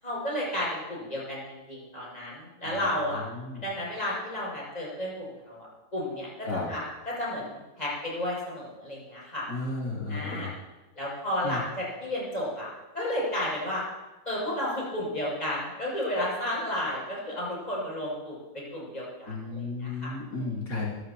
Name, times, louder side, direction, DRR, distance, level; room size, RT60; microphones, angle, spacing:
voice 1, 0.0-3.2 3.6-5.7 5.9-9.4 10.1-10.5 11.0-12.7 12.9-13.8 14.3-20.5, left 1 dB, 25° left, -5 dB, 7.1 m, -32 dB
voice 2, 3.3-3.6 6.4-6.7 9.5-10.5 11.4-11.6 19.3-20.9, left 3 dB, 85° left, -5 dB, 3.2 m, -33 dB
24.0 x 15.0 x 3.0 m, 1.1 s
omnidirectional pair, 1.7 m